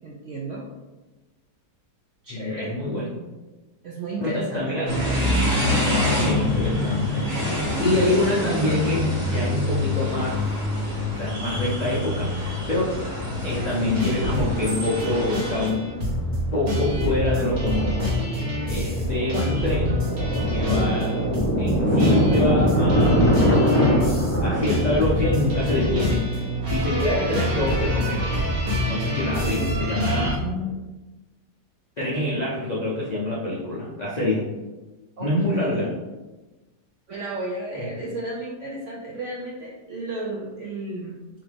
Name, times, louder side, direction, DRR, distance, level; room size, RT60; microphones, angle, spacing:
voice 1, 0.0-0.7 2.2-2.8 3.8-5.2 19.3-19.5 29.4-30.0 30.3-30.8 35.2-35.9 37.1-41.2, right 2 dB, 75° right, -3 dB, 0.6 m, -33 dB
voice 2, 2.3-3.1 4.2-4.9 6.2-10.6 11.1-13.0 13.4-15.9 16.5-18.0 18.7-20.0 20.5-21.1 21.6-23.7 24.4-28.3 28.9-30.3 32.0-34.5 35.2-35.9 37.7-37.9, left 1 dB, 75° left, -6 dB, 0.3 m, -26 dB
sound 1, 4.9-15.7, left 1 dB, 60° right, 1.4 m, -26 dB
sound 2, 14.0-30.4, equal, 45° right, 1.1 m, -26 dB
Thunder, 14.5-14.6 14.9-15.0 15.4-15.7 16.1-28.5, equal, 10° left, 0.7 m, -24 dB
3.8 x 3.4 x 3.4 m, 1.1 s
omnidirectional pair, 1.9 m